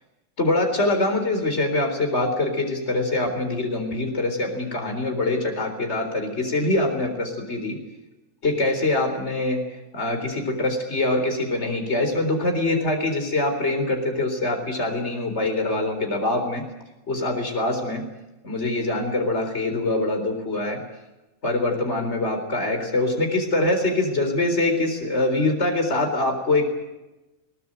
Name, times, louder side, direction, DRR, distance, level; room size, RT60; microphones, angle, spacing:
voice 1, 0.4-7.8 8.4-9.6 9.9-16.6 17.1-18.0 18.4-20.8 21.4-26.6, left 2 dB, 50° left, 5 dB, 4.3 m, -24 dB
21.5 x 19.5 x 9.0 m, 1.0 s
omnidirectional pair, 1.5 m